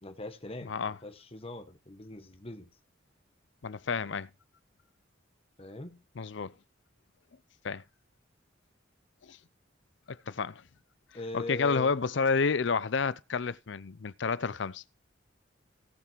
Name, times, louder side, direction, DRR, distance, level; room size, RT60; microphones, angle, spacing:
voice 1, 0.0-2.7 5.6-6.0 11.1-11.9, left 2 dB, 30° left, 1.4 m, -41 dB
voice 2, 0.6-1.0 3.6-4.3 6.2-6.5 7.6-7.8 9.2-9.4 10.1-10.6 11.3-14.8, left 5 dB, 65° left, 0.6 m, -30 dB
17.5 x 5.9 x 4.5 m
head